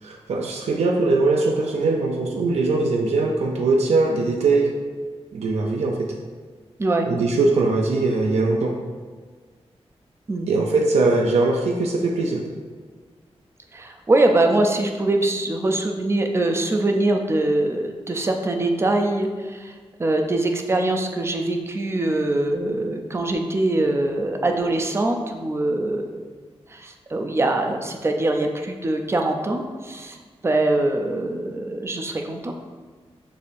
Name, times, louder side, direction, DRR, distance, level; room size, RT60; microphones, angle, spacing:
voice 1, 0.0-4.7 5.3-6.1 7.1-8.7 10.5-12.4, right 3 dB, 90° right, 1 dB, 0.4 m, -21 dB
voice 2, 10.3-10.6 13.7-19.7 20.0-26.3 26.7-30.2 30.4-32.5, right 2 dB, 25° right, 4 dB, 0.4 m, -23 dB
6.7 x 2.7 x 2.5 m, 1.5 s
wide cardioid pair, 145°, 11 cm